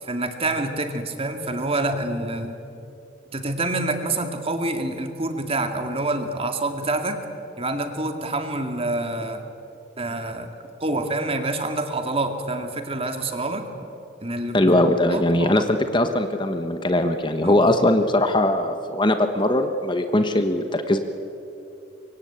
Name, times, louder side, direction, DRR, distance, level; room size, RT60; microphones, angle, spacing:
voice 1, 0.0-2.6 3.3-7.2 7.6-9.4 10.0-10.5 10.8-13.7 14.2-14.6 15.1-15.8 17.4-17.9, right 2 dB, 30° right, 6 dB, 2.2 m, -27 dB
voice 2, 14.5-21.0, left 1 dB, 25° left, 7 dB, 1.2 m, -20 dB
25.5 x 24.0 x 8.9 m, 2.9 s
head